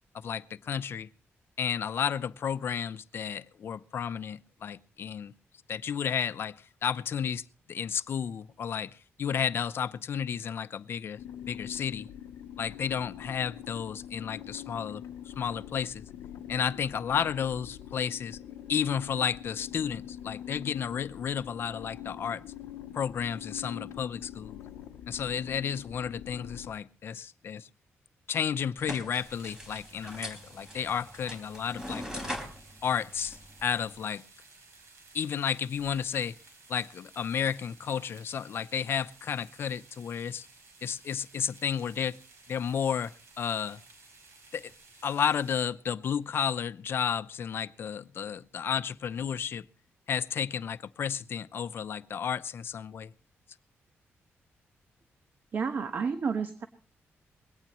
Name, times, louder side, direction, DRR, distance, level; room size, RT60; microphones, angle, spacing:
voice 1, 0.1-1.1 1.6-5.3 5.7-7.4 7.7-11.2 11.5-12.1 12.6-15.0 15.4-16.1 16.5-18.4 18.7-22.4 22.9-24.6 25.1-27.7 28.3-32.3 32.8-34.2 35.1-36.4 36.7-40.5 40.8-42.2 42.5-43.8 44.5-44.7 45.0-49.7 50.1-53.1, left 7 dB, 55° left, 0.7 m, -32 dB
sound 1, 11.2-26.7, left 10 dB, 90° left, 0.7 m, -44 dB
sound 2, 28.8-34.0, equal, 10° right, 4.1 m, -42 dB
sound 3, 29.1-45.7, right 3 dB, 75° right, 6.2 m, -56 dB
voice 2, 55.5-56.7, right 5 dB, 45° right, 1.1 m, -30 dB
21.5 x 17.5 x 3.1 m
wide cardioid pair, 140°, 5 cm